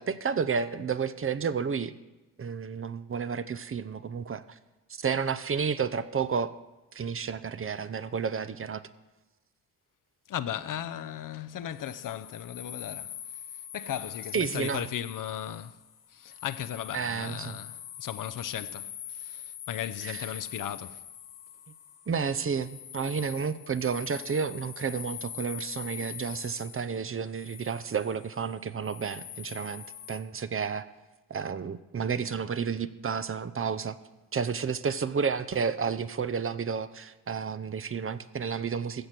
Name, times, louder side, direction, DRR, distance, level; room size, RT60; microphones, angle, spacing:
voice 1, 0.0-1.9 2.4-4.6 4.9-6.5 6.9-8.8 14.3-14.8 16.9-17.6 20.0-20.3 22.1-30.9 31.3-34.0 34.3-39.1, right 6 dB, 35° right, 0.7 m, -31 dB
voice 2, 10.3-13.1 13.7-15.8 16.1-21.0, left 10 dB, 60° left, 0.7 m, -36 dB
sound 1, 11.7-30.2, left 10 dB, 80° left, 1.3 m, -43 dB
15.0 x 6.5 x 6.0 m
supercardioid pair, 55°, 36 cm